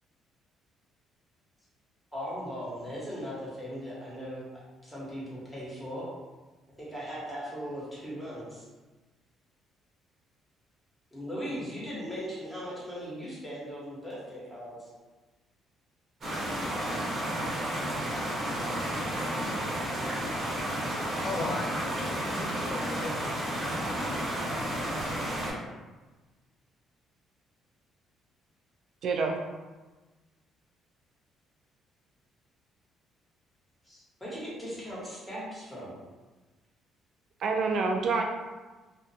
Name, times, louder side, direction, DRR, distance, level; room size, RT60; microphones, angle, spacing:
voice 1, 2.1-4.4 4.8-6.0 6.8-8.7 11.1-14.9 23.9-24.3 33.8-35.9, equal, 10° left, -8 dB, 1.3 m, -39 dB
sound 1, 16.2-25.5, right 1 dB, 45° right, 1.0 m, -32 dB
voice 2, 20.8-23.7, left 3 dB, 45° left, 0 dB, 0.3 m, -38 dB
voice 3, 29.0-29.4 37.4-38.2, right 4 dB, 65° right, 2 dB, 0.3 m, -27 dB
2.4 x 2.2 x 2.7 m, 1.2 s
cardioid pair, 90°, 0 cm